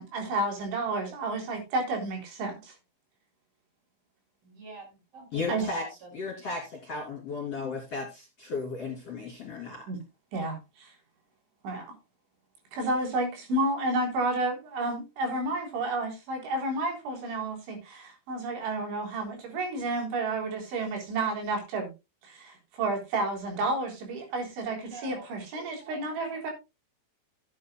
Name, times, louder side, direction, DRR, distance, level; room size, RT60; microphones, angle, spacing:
voice 1, 0.0-2.7 5.5-5.7 9.9-10.0 10.3-10.9 11.6-11.9 12.7-21.9 22.2-26.5, right 2 dB, 80° right, 1 dB, 6.3 m, -31 dB
voice 2, 4.4-6.1 6.6-6.7 24.7-26.5, right 3 dB, 50° right, -1 dB, 7.8 m, -48 dB
voice 3, 5.3-5.8 6.1-9.9, left 4 dB, 40° left, -1 dB, 3.3 m, -35 dB
16.0 x 9.5 x 2.2 m, 0.25 s
omnidirectional pair, 5.3 m